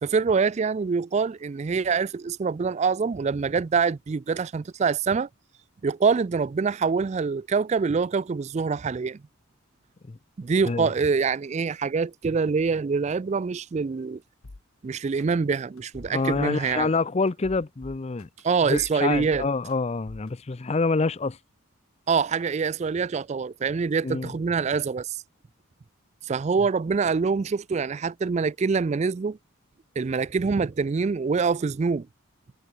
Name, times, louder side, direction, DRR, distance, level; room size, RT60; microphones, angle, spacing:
voice 1, 0.0-5.3 5.8-9.2 10.4-14.2 14.8-16.9 18.4-19.4 22.1-25.2 26.2-29.4 30.0-32.1, right 5 dB, 30° right, 0.3 m, -25 dB
sound 1, 14.4-14.6 15.2-15.3 15.8-16.7 17.3-18.4 18.7-19.7 20.1-20.3, left 2 dB, 90° left, 1.1 m, -44 dB
voice 2, 16.1-18.3 18.6-21.4 24.0-24.3, left 3 dB, 30° left, 0.5 m, -26 dB
head